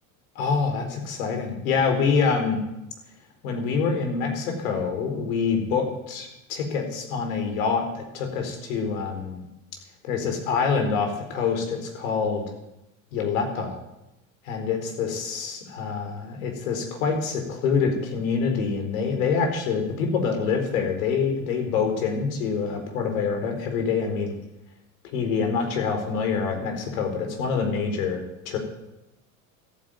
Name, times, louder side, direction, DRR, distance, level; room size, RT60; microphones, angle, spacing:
voice 1, 0.4-2.6 3.4-9.4 10.0-12.4 13.1-13.8 14.4-24.3 25.1-28.6, left 5 dB, 75° left, 5 dB, 4.3 m, -26 dB
14.0 x 9.2 x 9.3 m, 0.93 s
hypercardioid pair, 95°, 41 cm